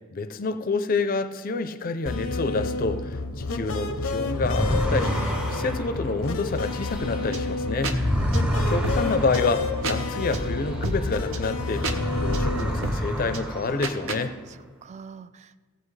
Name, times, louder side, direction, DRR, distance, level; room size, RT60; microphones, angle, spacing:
voice 1, 0.1-5.2 5.5-7.9 8.7-14.3, left 4 dB, 45° left, 10 dB, 0.5 m, -28 dB
sound 1, 2.1-12.8, left 3 dB, 85° left, 0.7 m, -30 dB
sound 2, 4.3-11.2 11.6-14.3, equal, 5° right, 0.7 m, -29 dB
sound 3, 6.9-14.2, right 2 dB, 75° right, 0.9 m, -33 dB
voice 2, 8.0-8.6 14.5-15.7, right 5 dB, 35° right, 14 dB, 0.3 m, -43 dB
16.0 x 7.6 x 3.2 m, 1.5 s
head